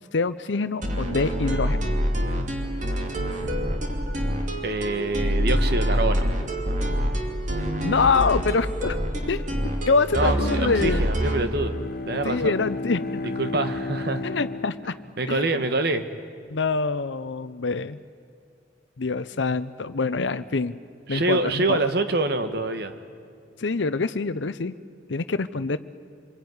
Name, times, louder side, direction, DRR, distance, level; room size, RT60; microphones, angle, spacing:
voice 1, 0.1-1.9 7.8-9.0 9.3-11.1 12.2-13.2 14.2-14.9 15.3-15.6 16.5-18.0 19.0-20.7 21.1-21.8 23.6-24.7 25.1-25.8, left 4 dB, 75° left, 12 dB, 0.7 m, -25 dB
sound 1, 0.8-11.5, equal, 40° right, 2.7 m, -26 dB
voice 2, 4.6-6.3 6.7-6.8 10.1-11.8 12.1-12.6 13.4-14.2 15.2-16.1 21.1-23.0, right 2 dB, 55° right, 9 dB, 1.5 m, -25 dB
Bowed string instrument, 11.3-15.6, left 2 dB, 50° left, 1.1 m, -33 dB
26.5 x 22.0 x 9.6 m, 2.4 s
head